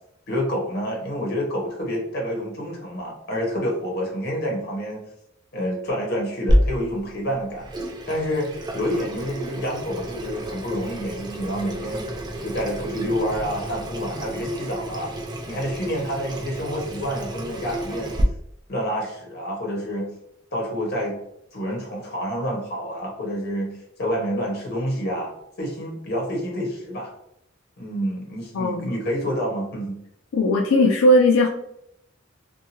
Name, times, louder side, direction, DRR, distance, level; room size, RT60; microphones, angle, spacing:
voice 1, 0.3-5.0 5.5-7.6 8.1-12.1 12.4-15.1 15.4-18.1 18.7-20.1 20.5-21.2 21.5-27.1 27.8-30.0, equal, 55° left, -1 dB, 1.0 m, -28 dB
Water tap faucet / Sink (filling or washing), 6.5-18.2, equal, 20° right, 0.3 m, -29 dB
voice 2, 28.5-28.9 30.3-31.5, left 1 dB, 90° left, 1 dB, 0.3 m, -18 dB
2.7 x 2.3 x 2.8 m, 0.76 s
head